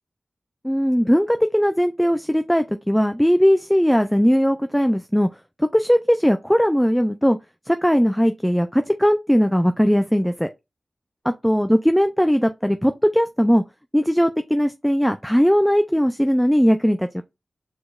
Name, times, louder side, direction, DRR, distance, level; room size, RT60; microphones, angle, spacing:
voice 1, 0.6-5.3 5.6-7.4 7.7-10.5 11.4-13.6 13.9-17.2, equal, 5° left, 0.4 m, -19 dB
4.7 x 4.1 x 2.4 m
cardioid pair, 50°, 0 cm